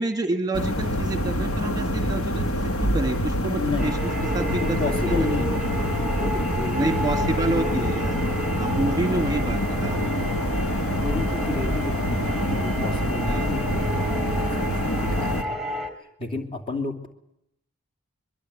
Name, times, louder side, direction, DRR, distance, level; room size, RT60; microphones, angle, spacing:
voice 1, 0.0-4.0 4.3-4.8 5.1-5.3 6.8-8.2 8.6-10.0 13.3-13.5, right 2 dB, 20° right, 5 dB, 1.7 m, -28 dB
sound 1, 0.5-15.4, equal, 80° left, 2.0 m, -26 dB
voice 2, 3.6-4.0 4.6-5.8 6.2-8.1 10.9-15.6 16.0-17.1, left 3 dB, 25° left, 3 dB, 3.1 m, -32 dB
sound 2, 3.8-15.9, equal, ahead, 3.6 m, -32 dB
23.5 x 23.0 x 8.4 m, 0.78 s
head